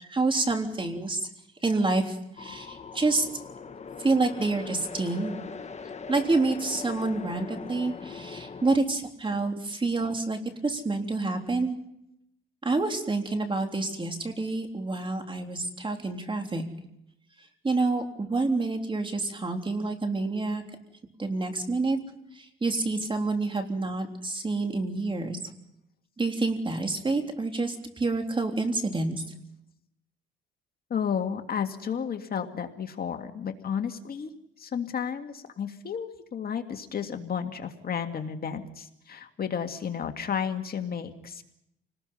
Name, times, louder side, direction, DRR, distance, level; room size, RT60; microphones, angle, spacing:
voice 1, 0.1-1.3 1.6-3.3 4.0-5.4 6.1-11.8 12.6-16.6 17.6-20.6 21.2-22.0 22.4-25.4 26.2-29.2, right 3 dB, 25° right, 4 dB, 3.6 m, -28 dB
sound 1, 2.4-8.8, left 5 dB, 35° left, 1.5 m, -40 dB
voice 2, 30.9-34.3 34.6-41.4, left 7 dB, 50° left, 6 dB, 2.0 m, -32 dB
28.5 x 20.0 x 5.6 m, 0.79 s
cardioid pair, 90°, 20 cm